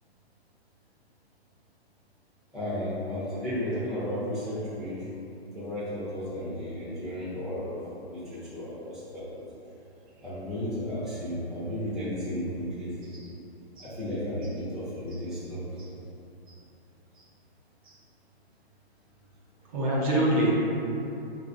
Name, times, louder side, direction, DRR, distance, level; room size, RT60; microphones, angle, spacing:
voice 1, 2.5-5.0 5.5-7.8 8.1-9.4 10.2-13.1 13.8-15.7, left 1 dB, ahead, -12 dB, 0.7 m, -33 dB
voice 2, 19.7-20.5, right 1 dB, 35° right, -5 dB, 0.8 m, -25 dB
5.5 x 2.8 x 2.6 m, 2.8 s
hypercardioid pair, 130°, 32 cm